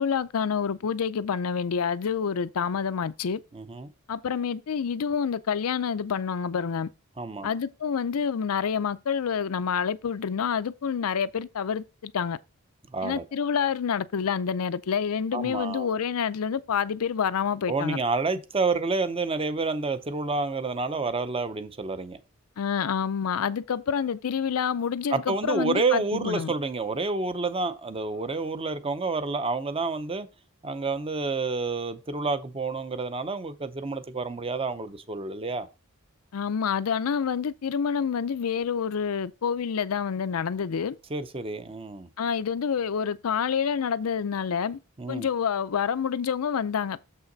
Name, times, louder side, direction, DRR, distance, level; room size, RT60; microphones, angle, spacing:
voice 1, 0.0-3.4 4.1-6.9 7.4-12.4 13.0-18.0 22.6-26.5 36.3-41.0 42.2-44.8 45.1-47.0, left 7 dB, 80° left, 0.5 m, -28 dB
voice 2, 3.5-3.9 7.2-7.5 12.9-13.2 15.3-15.9 17.7-22.2 25.1-30.3 30.6-35.7 41.1-42.1 45.0-45.3, right 3 dB, 25° right, 0.6 m, -29 dB
7.3 x 5.7 x 3.9 m
head